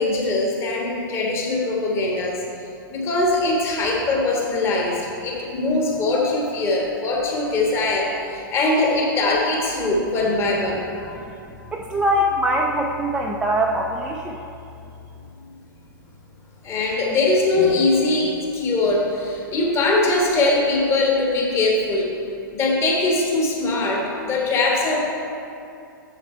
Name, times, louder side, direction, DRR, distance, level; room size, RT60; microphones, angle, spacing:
voice 1, 0.0-2.4 2.9-10.8 16.6-22.1 22.5-25.1, left 2 dB, 25° left, -2 dB, 1.5 m, -21 dB
voice 2, 11.0-11.4 11.7-14.5, right 1 dB, 5° right, -2 dB, 0.4 m, -23 dB
7.3 x 7.2 x 4.4 m, 2.6 s
figure-of-eight pair, 105°, 11 cm